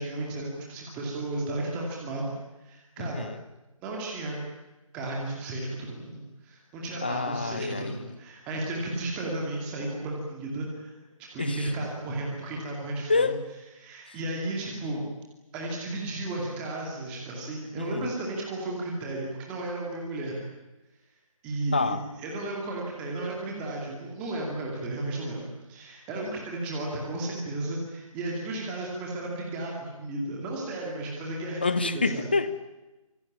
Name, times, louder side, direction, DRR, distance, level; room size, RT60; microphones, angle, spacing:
voice 1, 0.0-2.3 2.6-3.2 3.8-4.4 4.9-10.9 11.2-13.4 13.8-15.0 15.5-20.4 21.4-25.4 25.7-32.3, right 2 dB, 5° right, -2 dB, 2.4 m, -34 dB
voice 2, 3.0-3.4 7.0-8.1 11.4-11.7 13.1-13.4 17.7-18.1 21.7-22.0 31.6-32.8, left 3 dB, 15° left, 14 dB, 0.8 m, -28 dB
26.5 x 20.5 x 8.7 m, 1.0 s
figure-of-eight pair, 175°, 18 cm